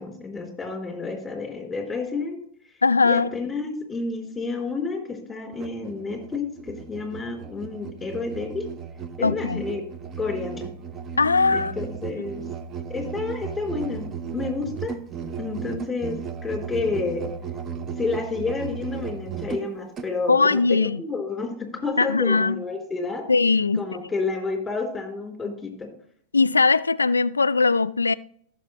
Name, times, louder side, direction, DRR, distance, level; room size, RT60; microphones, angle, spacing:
voice 1, 0.0-2.4 3.0-8.7 9.2-9.8 10.2-10.7 11.5-12.4 12.9-14.9 15.4-17.3 18.0-23.2 23.8-25.9, left 4 dB, 10° left, 3.5 m, -30 dB
voice 2, 2.8-3.3 9.2-9.6 11.2-11.7 20.3-21.0 22.0-22.6 23.3-23.8 26.3-28.1, left 4 dB, 90° left, 0.3 m, -20 dB
Musical instrument, 5.5-20.1, right 6 dB, 30° right, 0.7 m, -35 dB
15.5 x 6.7 x 3.1 m
hypercardioid pair, 95°, 0 cm